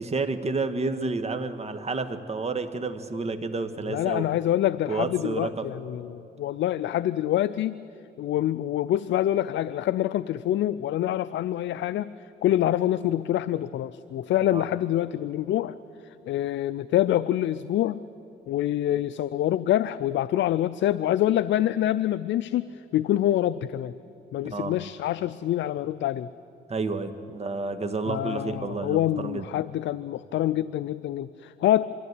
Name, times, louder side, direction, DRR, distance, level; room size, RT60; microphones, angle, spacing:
voice 1, 0.0-4.3 4.9-5.7 14.5-14.6 24.4-24.8 26.7-29.5, right 3 dB, 30° right, 8 dB, 1.6 m, -30 dB
voice 2, 3.9-7.7 8.2-12.1 12.4-15.8 16.3-18.0 18.5-22.7 22.9-23.9 24.3-26.3 28.1-31.9, left 12 dB, 70° left, 15 dB, 0.5 m, -26 dB
23.0 x 15.0 x 9.7 m, 2.8 s
cardioid pair, 90°, 20 cm